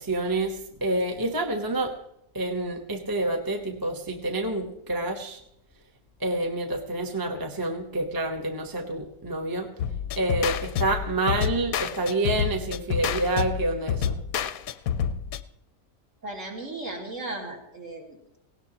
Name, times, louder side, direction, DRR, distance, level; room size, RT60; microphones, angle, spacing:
voice 1, 0.0-1.9 2.3-5.4 6.2-9.7 10.2-14.2, right 2 dB, 15° right, 3 dB, 1.0 m, -28 dB
sound 1, 9.8-15.4, left 8 dB, 65° left, 1.0 m, -28 dB
voice 2, 16.2-18.4, right 2 dB, 50° right, -2 dB, 3.2 m, -36 dB
18.5 x 17.5 x 3.0 m, 0.77 s
omnidirectional pair, 1.8 m